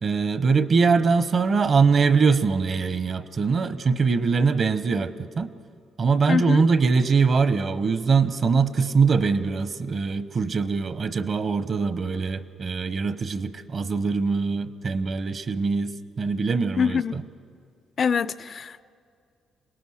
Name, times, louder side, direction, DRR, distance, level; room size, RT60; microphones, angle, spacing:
voice 1, 0.0-5.5 6.0-17.2, right 5 dB, 50° right, 13 dB, 1.0 m, -22 dB
voice 2, 6.3-6.6 16.8-17.2 18.0-18.8, left 6 dB, 50° left, 16 dB, 0.5 m, -24 dB
27.0 x 18.5 x 6.4 m, 2.3 s
cardioid pair, 85°, 0 cm